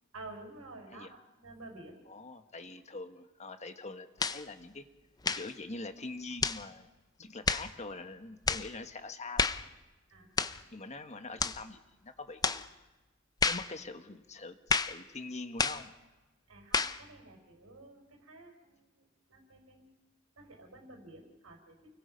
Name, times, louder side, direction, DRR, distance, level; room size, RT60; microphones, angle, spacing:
voice 1, 0.1-2.0 10.1-10.7 16.5-19.9 20.3-22.0, right 2 dB, 90° right, 3 dB, 4.7 m, -51 dB
voice 2, 2.1-4.8 5.3-6.9 7.2-9.5 10.7-12.7 13.5-15.9, left 3 dB, 35° left, 8 dB, 1.4 m, -44 dB
sound 1, 4.2-4.4 5.2-5.5 6.4-6.6 7.5-7.7 8.5-8.7 9.4-9.7 10.4-10.6 11.4-11.6 12.4-12.7 13.4-13.7 14.7-15.0 15.6-15.9 16.7-17.0, left 4 dB, 20° left, 0.6 m, -30 dB
29.0 x 22.5 x 5.3 m, 1.1 s
head